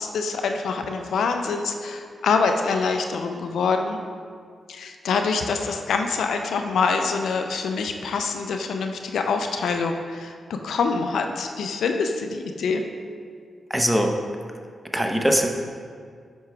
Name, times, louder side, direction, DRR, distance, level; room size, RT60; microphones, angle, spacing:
voice 1, 0.0-4.0 4.7-12.8, left 4 dB, 80° left, 5 dB, 0.4 m, -25 dB
voice 2, 13.7-14.2 14.9-15.5, equal, 5° right, 3 dB, 0.7 m, -21 dB
8.0 x 5.7 x 2.3 m, 2.1 s
supercardioid pair, 45°, 0 cm